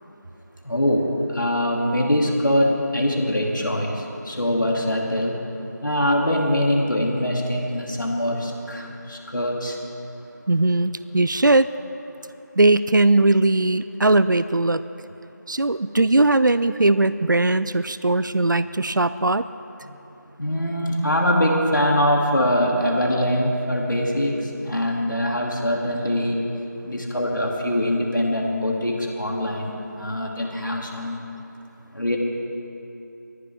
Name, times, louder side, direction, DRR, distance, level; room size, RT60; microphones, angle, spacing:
voice 1, 0.6-5.4 5.8-9.8 19.9-20.0 20.4-26.5 26.8-31.3 31.9-32.2, equal, 80° left, -1 dB, 2.4 m, -23 dB
voice 2, 10.5-11.7 12.6-14.8 15.5-19.4, right 2 dB, 80° right, 14 dB, 0.5 m, -19 dB
21.5 x 14.5 x 3.5 m, 2.9 s
figure-of-eight pair, 175°, 10 cm